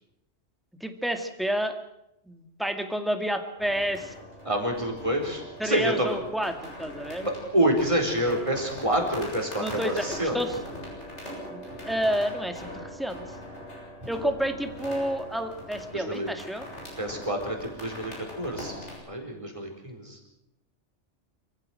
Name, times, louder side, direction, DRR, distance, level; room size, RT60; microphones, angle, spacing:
voice 1, 0.8-1.7 2.3-4.1 5.6-7.3 9.6-10.6 11.5-13.3 14.1-16.7, equal, ahead, 6 dB, 2.1 m, -30 dB
sound 1, 3.6-19.0, equal, 85° left, 7.7 m, -41 dB
voice 2, 4.5-6.1 7.2-10.4 15.9-16.3 17.0-20.2, right 1 dB, 25° right, 3 dB, 4.6 m, -28 dB
26.0 x 15.0 x 7.8 m, 0.86 s
omnidirectional pair, 1.2 m